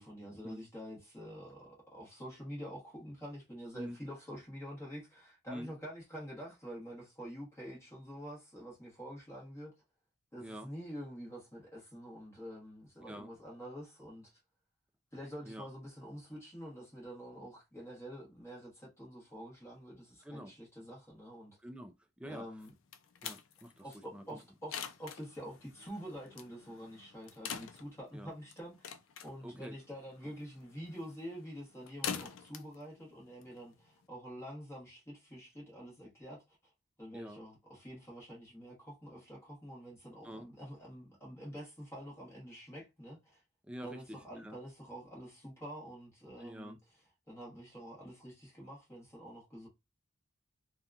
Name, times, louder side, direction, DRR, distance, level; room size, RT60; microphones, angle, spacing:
voice 1, 0.0-9.7 10.3-14.4 15.1-21.6 22.2-22.7 23.8-28.9 29.2-36.6 37.0-43.4 43.8-46.8 47.3-49.7, equal, 15° left, 1.0 m, -47 dB
voice 2, 21.6-22.5 23.2-23.8 24.1-24.4 28.1-28.3 29.4-29.7 37.1-37.4 40.2-40.5 43.6-44.6 46.4-46.8, equal, 5° right, 0.3 m, -46 dB
sound 1, 22.6-34.1, left 8 dB, 70° left, 0.4 m, -46 dB
2.8 x 2.2 x 2.4 m
head